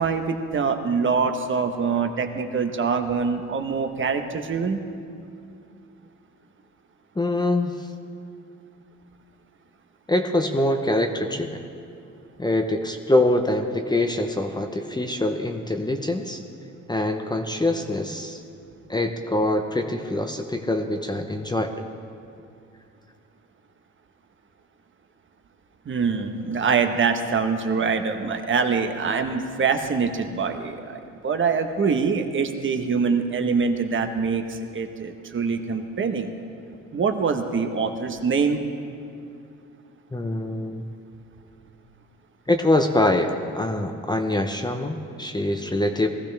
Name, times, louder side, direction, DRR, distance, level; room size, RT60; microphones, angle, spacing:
voice 1, 0.0-4.8 25.8-36.3 36.9-38.6, right 5 dB, 40° right, 6 dB, 1.2 m, -24 dB
voice 2, 7.2-7.9 10.1-11.6 12.4-16.4 16.9-18.4 18.9-21.7 40.1-40.8 42.5-46.1, left 1 dB, 15° left, 4 dB, 0.8 m, -24 dB
19.5 x 15.0 x 3.5 m, 2.5 s
cardioid pair, 90°, 30 cm